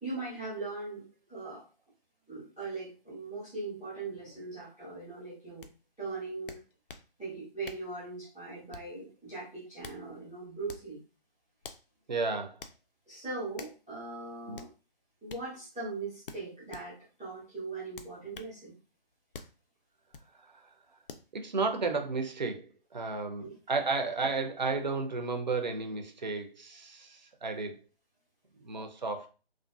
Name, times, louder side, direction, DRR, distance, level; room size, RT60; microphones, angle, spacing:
voice 1, 0.0-1.6 2.3-5.7 6.0-6.6 7.2-11.0 13.1-14.7 15.2-18.7 23.4-23.5, right 3 dB, ahead, -13 dB, 0.6 m, -40 dB
sound 1, 5.6-5.7 6.5-7.1 7.6-7.9 8.7-9.0 9.6-10.0 10.6-10.9 11.6-11.9 12.6-12.8 13.6-13.8 14.5-14.7 15.3-15.5 16.3-16.9 17.9-18.5 19.3-19.6 20.1-20.3 21.1-21.3, left 4 dB, 65° left, 0.5 m, -47 dB
voice 2, 12.1-12.6 14.5-14.6 20.4-20.5 21.3-27.8 28.6-29.3, right 4 dB, 50° right, 5 dB, 0.6 m, -33 dB
2.6 x 2.4 x 2.3 m, 0.34 s
figure-of-eight pair, 160°, 30 cm